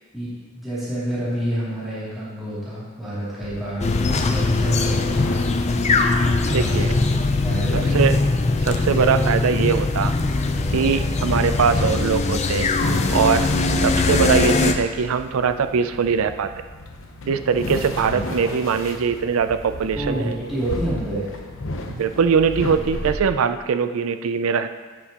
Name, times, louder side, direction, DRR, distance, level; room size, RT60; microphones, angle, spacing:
voice 1, 0.1-5.5 6.5-8.0 18.0-18.3 19.9-21.3, right 1 dB, ahead, -13 dB, 2.7 m, -29 dB
sound 1, 3.4-23.2, left 2 dB, 65° left, 0.8 m, -33 dB
sound 2, 3.8-14.7, left 3 dB, 30° left, 0.5 m, -21 dB
voice 2, 6.5-6.9 7.7-8.3 8.6-10.1 10.7-12.7 13.1-13.5 13.8-16.5 17.2-20.3 21.9-24.8, right 6 dB, 70° right, 10 dB, 0.4 m, -21 dB
10.5 x 7.2 x 2.9 m, 1.5 s
head